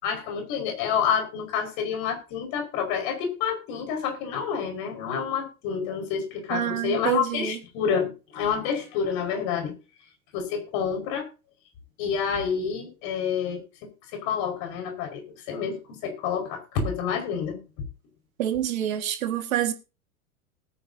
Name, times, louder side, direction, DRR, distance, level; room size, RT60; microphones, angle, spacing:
voice 1, 0.0-9.7 10.3-11.3 12.0-13.6 14.1-17.6, left 7 dB, 50° left, 5.2 m, -28 dB
voice 2, 6.5-7.6 18.4-19.7, right 12 dB, 65° right, 1.9 m, -27 dB
19.0 x 9.8 x 2.8 m
figure-of-eight pair, 85°, 44 cm